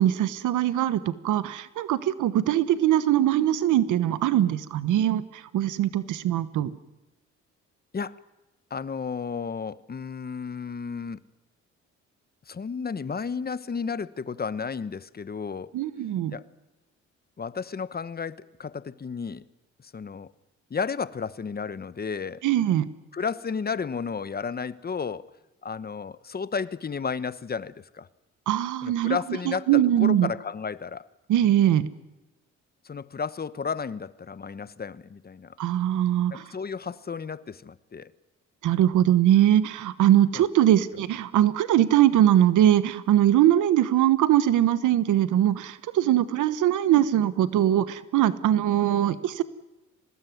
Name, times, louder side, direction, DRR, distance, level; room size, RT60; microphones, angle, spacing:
voice 1, 0.0-6.7 15.7-16.3 22.4-22.9 28.5-29.2 29.5-30.3 31.3-31.9 35.6-36.4 38.6-49.4, right 12 dB, 80° right, 14 dB, 1.2 m, -22 dB
voice 2, 8.7-11.2 12.5-15.7 16.3-16.5 17.4-19.4 19.8-20.3 20.7-22.4 23.1-25.3 25.6-28.1 28.8-31.1 32.8-35.6 36.3-38.1 40.3-40.5, left 5 dB, 30° left, 16 dB, 1.1 m, -33 dB
24.5 x 19.5 x 9.4 m, 1.1 s
cardioid pair, 90°, 30 cm